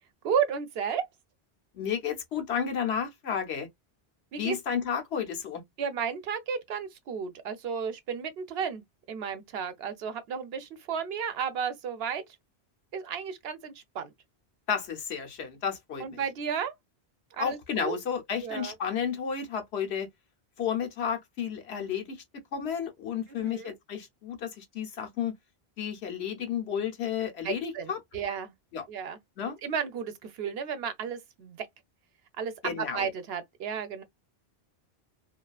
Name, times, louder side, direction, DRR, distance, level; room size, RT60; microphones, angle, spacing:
voice 1, 0.2-1.0 4.3-4.6 5.8-12.2 12.9-14.1 16.0-16.7 17.3-18.0 18.4-18.7 23.3-23.8 27.4-28.5 28.9-29.2 29.6-31.7 32.4-34.0, right 7 dB, 75° right, 0.8 m, -33 dB
voice 2, 1.7-3.7 4.4-5.6 14.7-16.2 17.4-20.1 20.6-22.2 22.5-25.3 25.8-28.0 28.7-28.9 29.4-29.6 32.6-33.1, left 7 dB, 80° left, 1.1 m, -32 dB
2.7 x 2.3 x 2.3 m
omnidirectional pair, 1.1 m